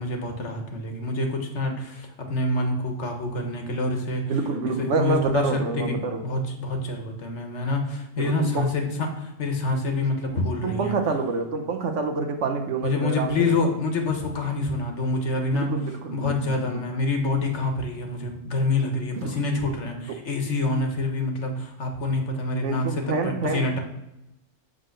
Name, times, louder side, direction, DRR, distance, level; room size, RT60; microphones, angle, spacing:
voice 1, 0.0-4.2 4.8-6.0 6.2-10.9 12.8-15.7 16.1-23.8, left 2 dB, 65° left, 1.5 m, -27 dB
voice 2, 4.3-6.2 8.2-8.7 10.6-13.5 15.5-16.8 19.2-19.4 20.1-20.2 22.6-23.7, right 4 dB, 70° right, 1.1 m, -27 dB
8.0 x 3.7 x 6.5 m
omnidirectional pair, 1.3 m